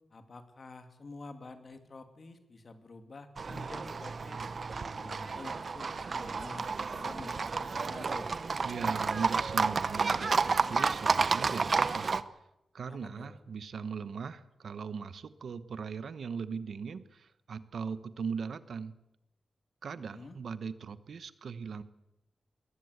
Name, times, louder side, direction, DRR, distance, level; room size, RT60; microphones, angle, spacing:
voice 1, 0.1-4.4 4.7-8.3 12.9-13.4 19.9-20.4, left 3 dB, 45° left, 7 dB, 2.6 m, -48 dB
Livestock farm animals working animals, 3.4-12.2, right 4 dB, 50° right, 0.9 m, -31 dB
voice 2, 8.6-12.2 12.7-18.9 19.8-21.8, right 6 dB, 75° right, 14 dB, 1.1 m, -39 dB
21.0 x 19.0 x 8.1 m, 0.89 s
wide cardioid pair, 115°, 0 cm